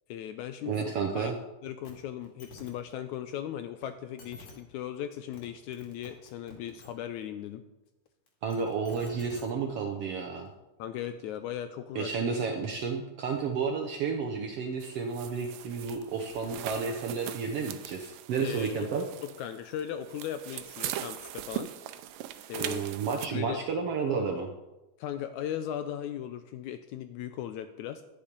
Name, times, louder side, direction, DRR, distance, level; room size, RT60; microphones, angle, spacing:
voice 1, 0.1-0.8 1.1-1.3 1.6-7.6 10.8-12.2 18.4-18.8 19.4-21.7 22.5-22.9 23.3-23.6 25.0-28.0, left 10 dB, 80° left, 9 dB, 1.8 m, -37 dB
voice 2, 0.7-1.3 8.4-10.5 11.9-19.0 22.6-24.5, right 5 dB, 70° right, 2 dB, 1.4 m, -31 dB
sound 1, 1.8-1.9 2.2-2.7 3.8-3.9 4.2-4.5 5.1-5.5 5.7-6.9 8.3-9.4 10.5-10.6, left 3 dB, 45° left, 3.2 m, -49 dB
sound 2, 14.8-23.3, right 13 dB, 85° right, 2.3 m, -40 dB
11.5 x 9.9 x 5.2 m, 1.0 s
omnidirectional pair, 3.8 m